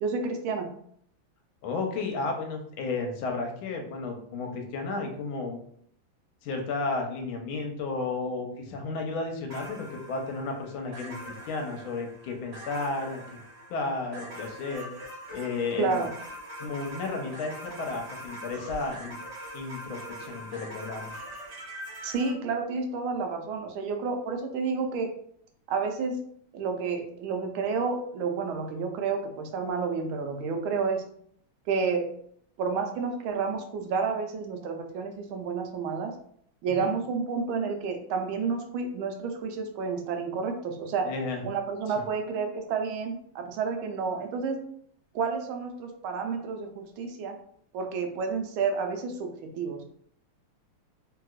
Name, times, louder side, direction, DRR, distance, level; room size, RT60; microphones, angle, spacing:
voice 1, 0.0-0.7 15.8-16.1 22.0-25.1 25.7-26.2 26.5-31.0 31.7-32.1 32.6-36.1 36.6-41.1 41.4-44.6 45.1-47.3 47.7-49.8, right 5 dB, 75° right, 4 dB, 1.3 m, -30 dB
voice 2, 1.6-5.6 6.4-13.4 13.7-14.9 15.3-16.1 16.6-19.2 19.5-21.1 36.7-36.9 41.0-41.4 42.0-42.1, left 3 dB, 80° left, 3 dB, 1.4 m, -33 dB
sound 1, 9.5-22.3, right 1 dB, 40° right, 1.0 m, -43 dB
3.3 x 2.8 x 2.4 m, 0.65 s
omnidirectional pair, 2.4 m